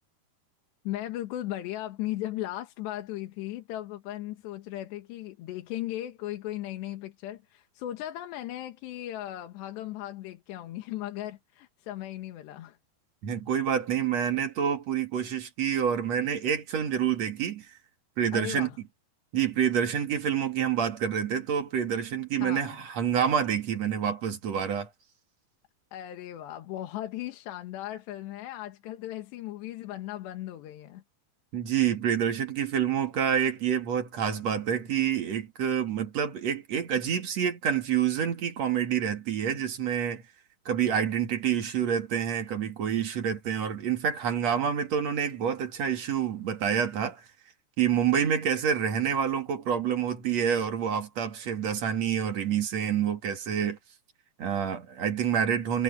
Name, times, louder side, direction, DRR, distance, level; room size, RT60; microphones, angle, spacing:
voice 1, 0.9-12.8 18.3-18.8 22.4-22.8 25.9-31.0, left 14 dB, 85° left, 3.8 m, -37 dB
voice 2, 13.2-17.7 18.2-18.7 19.3-24.9 31.5-40.2 40.7-47.2 47.8-53.8 54.4-55.8, right 8 dB, 50° right, 2.6 m, -27 dB
omnidirectional pair, 4.8 m